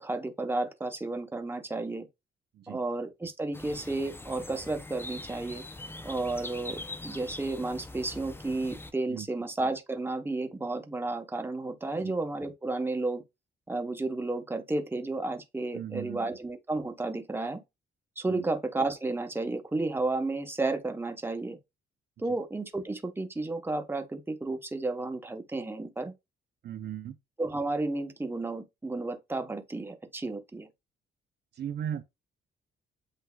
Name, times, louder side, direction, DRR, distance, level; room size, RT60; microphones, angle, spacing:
voice 1, 0.0-2.1 2.7-5.6 6.0-13.2 13.7-17.6 18.2-21.6 22.2-26.1 27.4-30.7, right 2 dB, 10° right, 0.9 m, -32 dB
sound 1, 3.5-8.9, left 2 dB, 10° left, 0.5 m, -43 dB
voice 2, 15.7-16.4 18.3-18.5 26.6-27.2 31.5-32.0, right 9 dB, 55° right, 0.6 m, -37 dB
8.0 x 2.8 x 2.3 m
cardioid pair, 90°, 20 cm